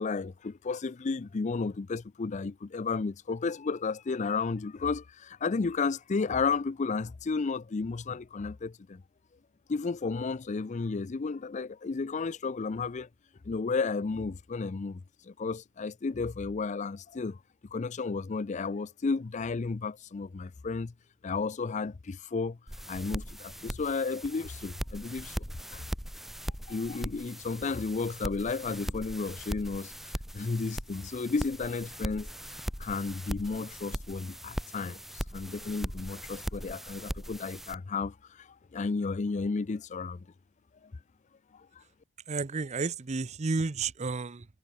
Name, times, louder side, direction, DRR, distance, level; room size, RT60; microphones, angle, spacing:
voice 1, 0.0-9.0 9.7-13.1 13.4-17.4 17.7-20.9 21.2-22.6 22.9-25.5 25.7-25.8 26.7-29.9 30.3-32.3 32.8-40.3 41.5-41.8, left 4 dB, 35° left, 0.4 m, -33 dB
sound 1, 22.7-37.7, equal, ahead, 1.2 m, -39 dB
voice 2, 42.3-44.5, right 4 dB, 35° right, 0.6 m, -31 dB
head